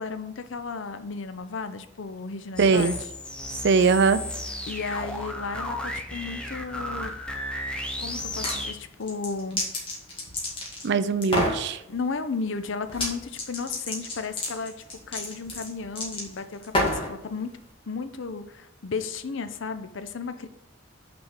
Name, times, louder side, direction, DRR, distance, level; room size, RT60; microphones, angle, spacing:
voice 1, 0.0-3.0 4.7-7.2 8.0-9.6 11.9-14.7 15.1-17.5 17.9-20.5, left 4 dB, 60° left, 10 dB, 0.6 m, -34 dB
sound 1, 2.6-8.7, left 1 dB, 5° left, 0.6 m, -34 dB
voice 2, 2.6-2.9 3.6-4.2 10.8-11.8, right 5 dB, 55° right, 14 dB, 0.4 m, -21 dB
sound 2, 8.2-8.6 9.0-10.9 11.2-11.6 12.9-13.1 13.4-17.1, left 1 dB, 25° left, 2.0 m, -29 dB
6.0 x 4.9 x 5.7 m, 0.84 s
head